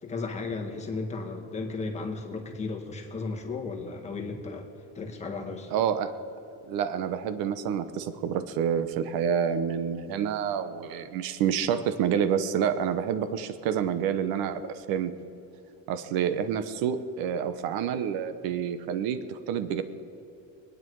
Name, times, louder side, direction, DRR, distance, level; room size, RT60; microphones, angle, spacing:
voice 1, 0.0-4.7 4.9-5.8, left 3 dB, 20° left, 2 dB, 1.5 m, -35 dB
voice 2, 5.7-6.1 6.7-15.1 15.9-19.8, right 8 dB, 70° right, 11 dB, 1.0 m, -28 dB
24.0 x 9.6 x 4.7 m, 2.7 s
cardioid pair, 175°, 37 cm